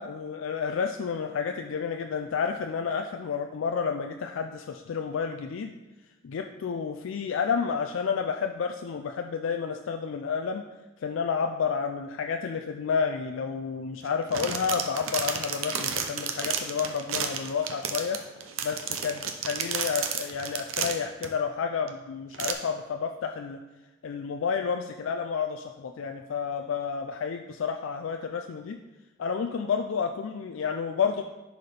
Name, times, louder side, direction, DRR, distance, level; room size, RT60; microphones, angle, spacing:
voice 1, 0.0-5.7 6.2-10.6 11.0-18.2 18.6-23.6 24.0-28.8 29.2-31.2, left 6 dB, 70° left, 5 dB, 0.4 m, -30 dB
sound 1, 14.0-21.3 21.9-22.0 22.3-22.5, right 7 dB, 75° right, 0.6 m, -32 dB
10.5 x 4.1 x 3.3 m, 1.1 s
head